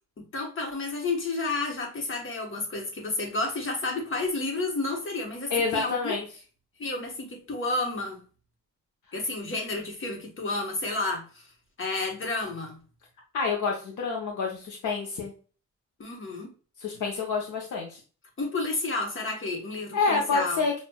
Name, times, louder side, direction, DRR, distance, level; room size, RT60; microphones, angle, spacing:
voice 1, 0.2-6.2 6.8-8.2 9.1-11.5 11.8-12.8 16.0-16.5 18.4-20.6, left 2 dB, 40° left, 2 dB, 1.1 m, -31 dB
voice 2, 5.5-6.2 13.3-15.3 16.8-18.0 19.9-20.7, left 4 dB, 75° left, 0 dB, 0.8 m, -28 dB
6.1 x 2.4 x 2.2 m, 0.37 s
wide cardioid pair, 160°, 31 cm